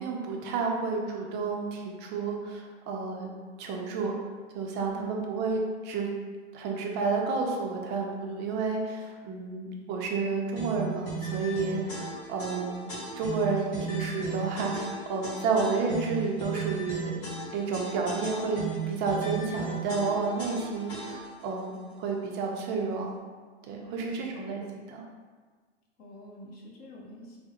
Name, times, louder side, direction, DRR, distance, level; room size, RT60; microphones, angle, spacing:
voice 1, 0.0-3.3 3.6-4.1 4.5-6.1 6.5-12.9 13.2-17.1 17.5-18.6 18.9-23.1 23.7-25.0, right 4 dB, 30° right, 0 dB, 0.4 m, -31 dB
voice 2, 4.7-5.1 23.8-24.3 26.0-27.4, equal, 25° left, -3 dB, 0.6 m, -47 dB
sound 1, 10.5-21.4, right 4 dB, 40° left, 1.5 m, -36 dB
3.4 x 2.1 x 2.8 m, 1.5 s
hypercardioid pair, 120°, 35 cm